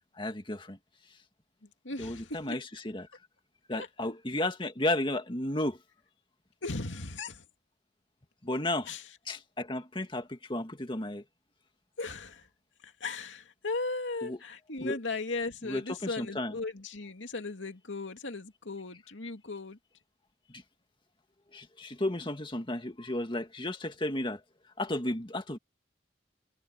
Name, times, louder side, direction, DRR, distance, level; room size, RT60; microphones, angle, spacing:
voice 1, 0.2-0.8 2.0-3.1 3.7-5.8 8.4-8.9 9.3-11.2 14.2-14.4 14.8-15.0 15.6-16.5 21.5-24.4 24.8-25.6, left 1 dB, 25° left, 2.1 m, -33 dB
voice 2, 1.8-2.6 3.7-3.9 6.6-7.5 8.8-9.1 12.0-12.5 12.8-19.8, left 3 dB, 85° left, 2.4 m, -37 dB
head